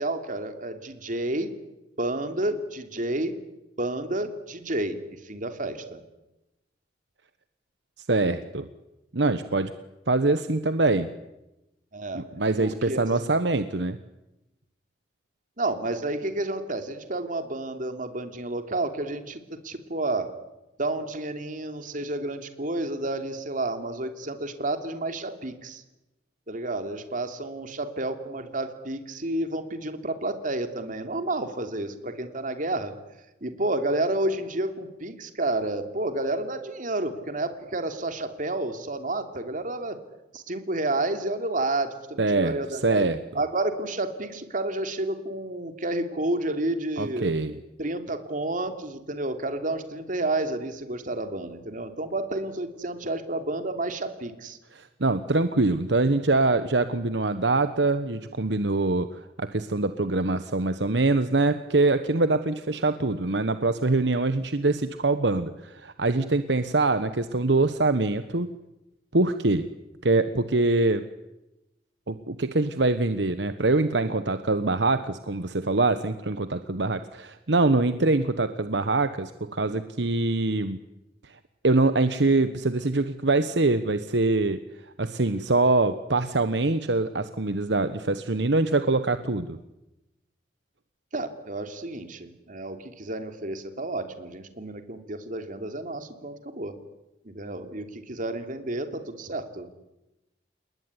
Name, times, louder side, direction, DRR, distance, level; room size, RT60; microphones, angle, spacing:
voice 1, 0.0-1.5 2.0-3.3 3.8-6.0 11.9-12.2 12.6-13.1 15.6-20.3 20.8-25.8 26.5-32.9 33.4-40.0 40.3-43.1 43.3-47.3 47.8-54.6 91.1-96.7 97.2-99.7, right 2 dB, 50° right, 7 dB, 3.0 m, -30 dB
voice 2, 8.1-8.7 9.1-9.7 10.1-11.1 12.1-14.0 42.2-43.2 47.0-47.6 54.7-68.5 69.1-69.6 70.0-71.0 72.1-80.8 81.2-81.4 81.6-84.6 85.0-89.6, right 2 dB, 70° right, 11 dB, 1.2 m, -24 dB
28.5 x 20.5 x 9.7 m, 0.95 s
head